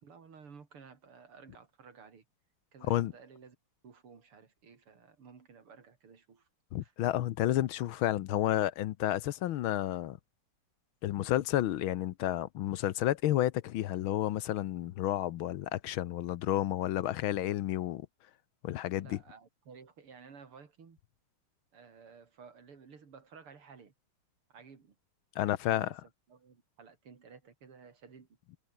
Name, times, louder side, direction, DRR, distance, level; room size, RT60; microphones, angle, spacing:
voice 1, 0.0-2.3 2.7-3.6 3.8-6.5 6.8-6.9 19.0-21.0 21.7-23.9 24.5-25.0 25.4-26.0 26.3-28.3, right 5 dB, 80° right, 3.8 m, -54 dB
voice 2, 6.7-10.2 11.0-18.1 18.6-19.2 25.4-25.9, left 13 dB, 75° left, 1.5 m, -31 dB
omnidirectional pair, 2.4 m